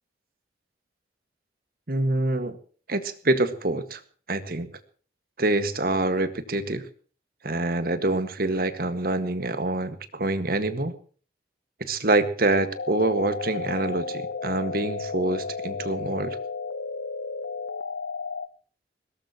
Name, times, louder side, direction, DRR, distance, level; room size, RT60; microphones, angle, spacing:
voice 1, 1.9-2.6 2.9-4.0 4.3-4.7 5.4-6.8 7.4-10.9 11.8-16.4, right 2 dB, 55° right, 11 dB, 1.7 m, -26 dB
sound 1, 12.7-18.5, left 4 dB, 85° left, 0.9 m, -33 dB
21.5 x 18.0 x 3.0 m, 0.42 s
head